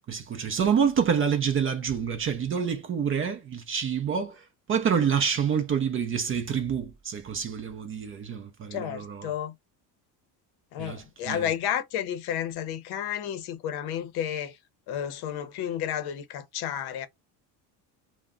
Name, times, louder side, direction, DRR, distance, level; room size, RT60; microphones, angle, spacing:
voice 1, 0.1-9.3 10.8-11.5, right 7 dB, 30° right, 0.4 m, -27 dB
voice 2, 8.7-9.5 10.7-14.6 14.9-17.1, left 9 dB, 60° left, 0.7 m, -31 dB
2.3 x 2.1 x 3.6 m
supercardioid pair, 100°, 44 cm